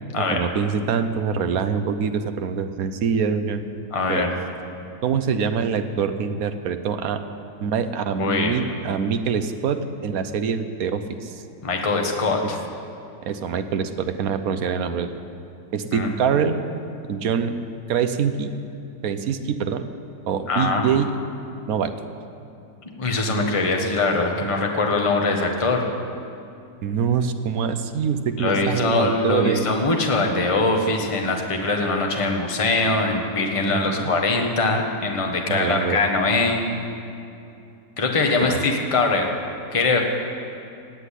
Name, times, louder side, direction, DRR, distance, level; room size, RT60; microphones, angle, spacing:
voice 1, 0.3-3.6 4.1-4.3 5.0-7.2 7.6-11.4 13.2-15.1 15.7-16.6 17.1-17.6 17.9-18.5 19.0-19.9 20.3-21.2 21.7-21.9 26.8-29.6 33.7-34.1 35.5-36.0 38.4-38.6, right 6 dB, 60° right, 9 dB, 1.1 m, -24 dB
voice 2, 3.9-4.3 8.2-8.5 11.6-12.6 15.9-16.1 20.5-20.9 23.0-25.8 28.4-36.6 38.0-39.3 39.7-40.0, left 3 dB, 20° left, 2 dB, 1.2 m, -22 dB
19.0 x 8.0 x 8.3 m, 2.6 s
omnidirectional pair, 2.0 m